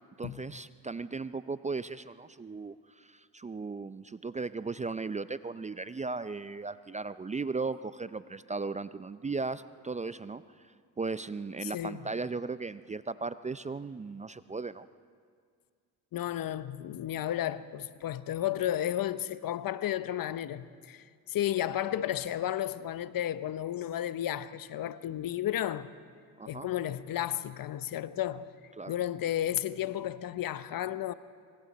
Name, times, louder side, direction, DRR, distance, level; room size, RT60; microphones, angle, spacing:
voice 1, 0.2-10.4 11.0-14.9 26.4-26.7 28.8-29.0, right 4 dB, 15° right, 0.5 m, -36 dB
voice 2, 11.6-12.0 16.1-25.9 26.5-28.5 28.9-31.1, left 12 dB, 55° left, 0.9 m, -33 dB
26.0 x 25.0 x 4.2 m
supercardioid pair, 65°, 42 cm